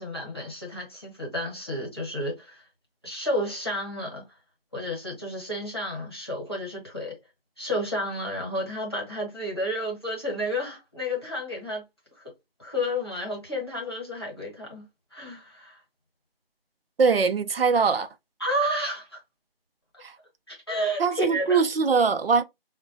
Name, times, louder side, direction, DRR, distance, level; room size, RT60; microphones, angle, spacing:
voice 1, 0.0-2.6 3.0-4.3 4.7-7.1 7.6-11.8 12.2-12.3 12.6-15.8 18.4-19.2 20.5-21.6, equal, 25° left, 1.0 m, -31 dB
voice 2, 17.0-18.1 20.0-20.1 21.0-22.4, right 5 dB, 75° right, 0.5 m, -22 dB
4.6 x 2.2 x 2.5 m
figure-of-eight pair, 180°, 30 cm